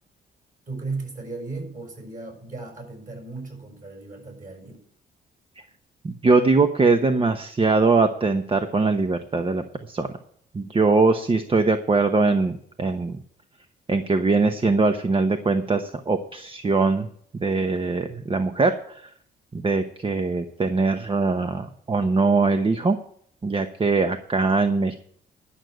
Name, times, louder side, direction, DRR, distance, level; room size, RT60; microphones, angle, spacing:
voice 1, 0.7-4.8, right 3 dB, 40° right, 3 dB, 6.0 m, -36 dB
voice 2, 6.0-10.1 10.5-13.2 13.9-17.1 17.4-19.1 19.5-23.0 23.4-24.9, right 3 dB, 25° right, 7 dB, 0.9 m, -22 dB
11.5 x 6.5 x 9.1 m, 0.63 s
cardioid pair, 90°, 20 cm